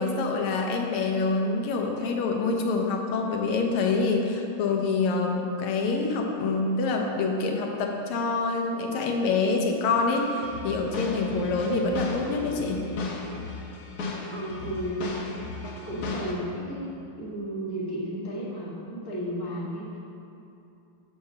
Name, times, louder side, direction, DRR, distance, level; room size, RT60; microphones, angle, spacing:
voice 1, 0.0-12.8, left 3 dB, 85° left, 1 dB, 1.7 m, -26 dB
sound 1, 10.2-16.3, left 3 dB, 55° left, 1.3 m, -35 dB
voice 2, 11.2-11.7 14.3-15.0 15.8-19.9, equal, 15° left, -6 dB, 1.1 m, -34 dB
5.9 x 5.6 x 6.6 m, 2.8 s
omnidirectional pair, 2.3 m